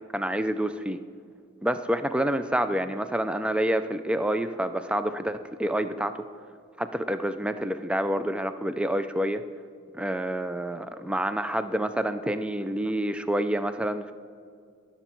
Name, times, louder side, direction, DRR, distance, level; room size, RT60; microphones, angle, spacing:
voice 1, 0.1-1.0 1.6-6.2 6.8-9.4 9.9-14.1, right 1 dB, 5° right, 10 dB, 0.3 m, -28 dB
19.5 x 7.1 x 4.5 m, 2.3 s
head